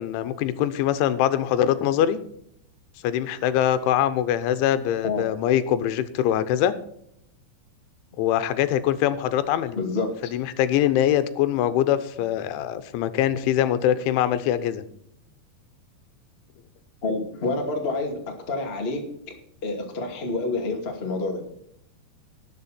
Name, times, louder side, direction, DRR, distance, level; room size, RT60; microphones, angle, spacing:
voice 1, 0.0-2.2 3.0-6.7 8.2-9.8 10.3-14.8, left 11 dB, 85° left, 12 dB, 3.3 m, -23 dB
voice 2, 9.7-10.1 17.0-19.0 19.6-21.4, left 3 dB, 30° left, 1 dB, 1.2 m, -28 dB
19.0 x 7.3 x 4.3 m, 0.72 s
omnidirectional pair, 5.3 m